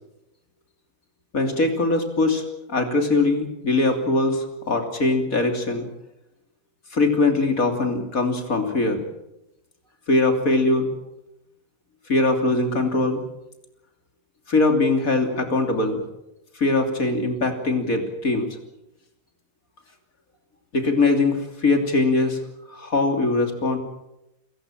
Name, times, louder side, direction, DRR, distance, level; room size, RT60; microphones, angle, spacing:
voice 1, 1.3-2.4 2.7-5.9 6.9-9.0 10.1-10.9 12.1-13.2 14.5-16.0 16.6-18.5 20.7-22.4 22.7-23.8, left 3 dB, 65° left, 5 dB, 3.6 m, -21 dB
29.0 x 17.0 x 7.4 m, 0.89 s
omnidirectional pair, 1.6 m